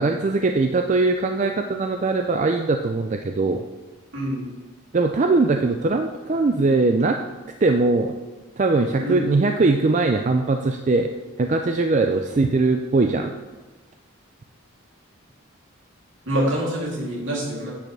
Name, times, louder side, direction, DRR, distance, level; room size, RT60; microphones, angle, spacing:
voice 1, 0.0-3.6 4.9-7.2 7.6-8.1 8.6-11.1 11.4-13.3, right 3 dB, 35° right, 5 dB, 0.4 m, -21 dB
voice 2, 4.1-4.5 9.0-9.2 16.3-17.7, right 1 dB, 70° right, -4 dB, 3.0 m, -25 dB
10.5 x 8.6 x 3.4 m, 1.2 s
head